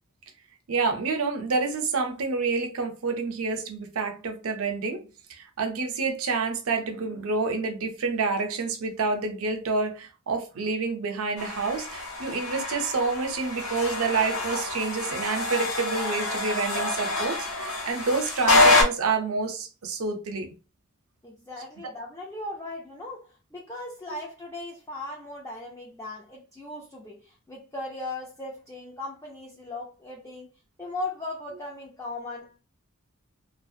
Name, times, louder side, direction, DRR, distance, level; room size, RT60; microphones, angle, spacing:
voice 1, 0.7-20.6, right 4 dB, 80° right, 0.5 m, -28 dB
sound 1, 11.4-18.8, left 2 dB, 70° left, 0.8 m, -26 dB
voice 2, 21.2-30.5 30.8-32.6, left 2 dB, 15° left, 0.4 m, -38 dB
2.4 x 2.1 x 2.6 m
head